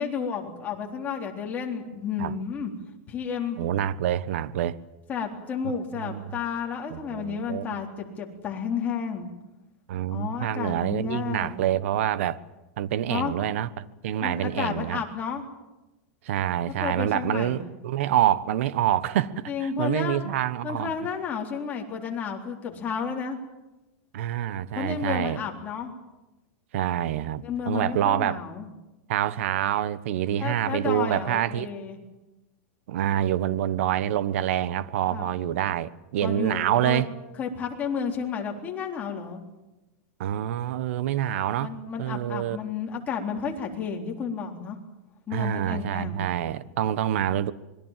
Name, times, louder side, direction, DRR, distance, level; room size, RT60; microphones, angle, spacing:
voice 1, 0.0-2.7 3.1-3.6 5.1-9.3 10.1-11.7 13.1-13.4 14.2-15.5 16.8-17.7 19.5-20.2 20.6-23.4 24.7-25.9 27.4-28.7 30.4-32.0 35.1-35.3 36.2-37.0 37.4-39.4 41.6-44.8 45.3-46.3, left 6 dB, 20° left, 3.8 m, -32 dB
voice 2, 3.6-4.8 6.0-6.2 6.9-7.6 9.9-12.4 12.8-15.0 16.2-20.9 24.1-25.4 26.7-28.4 29.1-31.7 32.9-37.1 40.2-41.7 42.0-42.6 45.3-47.5, right 11 dB, 65° right, 1.2 m, -26 dB
26.5 x 22.0 x 7.5 m
supercardioid pair, 160°, 8 cm